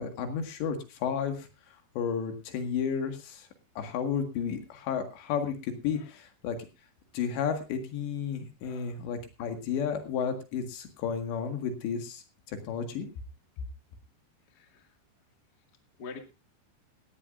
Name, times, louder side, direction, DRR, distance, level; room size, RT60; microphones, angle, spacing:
voice 1, 0.0-1.5 2.0-3.5 3.8-6.6 7.1-13.1, left 7 dB, 75° left, 6 dB, 4.1 m, -32 dB
voice 2, 8.6-9.0 14.5-14.9 16.0-16.2, left 5 dB, 35° left, 5 dB, 1.7 m, -46 dB
18.0 x 14.5 x 2.6 m, 0.29 s
omnidirectional pair, 5.1 m